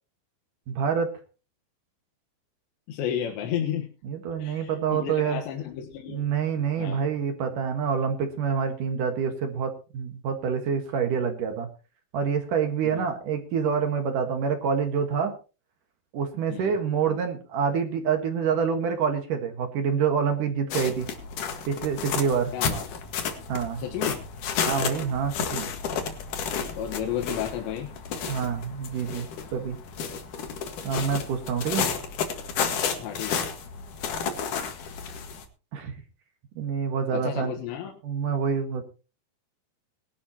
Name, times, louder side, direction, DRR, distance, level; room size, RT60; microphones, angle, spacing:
voice 1, 0.7-1.1 4.0-5.4 6.1-11.7 12.1-15.3 16.1-21.1 21.7-22.5 23.5-23.8 24.7-25.7 28.3-29.3 29.5-29.8 30.8-31.9 35.7-35.9 36.6-37.6 38.0-38.8, right 6 dB, 60° right, 5 dB, 2.7 m, -27 dB
voice 2, 2.9-3.9 4.4-6.3 6.8-7.1 12.9-13.1 16.5-16.8 22.5-23.0 23.8-24.2 26.7-27.9 33.0-33.5 37.1-37.9, left 9 dB, 85° left, 2 dB, 3.6 m, -32 dB
sound 1, 20.7-35.4, left 6 dB, 55° left, 2.8 m, -32 dB
21.0 x 11.5 x 2.9 m, 0.33 s
omnidirectional pair, 4.9 m